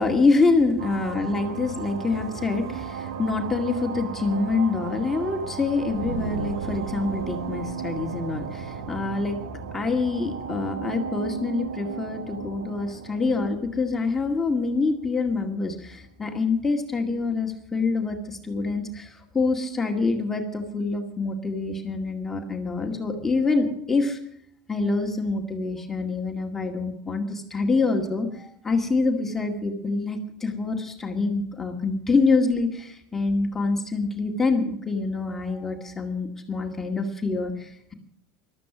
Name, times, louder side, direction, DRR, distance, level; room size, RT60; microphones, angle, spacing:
voice 1, 0.0-9.4 9.7-24.2 24.7-37.9, left 3 dB, 15° left, 2 dB, 2.1 m, -26 dB
sound 1, 0.8-14.9, right 7 dB, 85° right, 1.2 m, -35 dB
14.5 x 12.5 x 6.2 m, 0.69 s
supercardioid pair, 115°, 2 cm